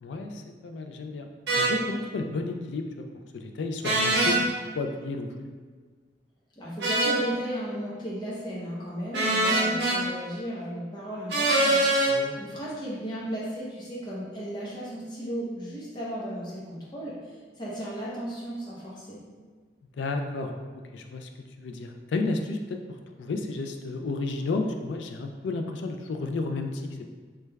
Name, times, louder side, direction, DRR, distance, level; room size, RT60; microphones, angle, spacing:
voice 1, 0.0-1.3 1.6-3.1 3.3-5.5 12.1-12.4 20.0-21.3 21.6-27.1, left 3 dB, 85° left, 5 dB, 0.3 m, -32 dB
sound 1, 1.5-1.7 3.8-4.4 6.8-7.2 9.1-10.0 11.3-12.1, right 2 dB, 70° right, 0.7 m, -23 dB
voice 2, 6.6-19.2, equal, 25° left, -6 dB, 0.7 m, -35 dB
3.2 x 3.1 x 2.2 m, 1.5 s
head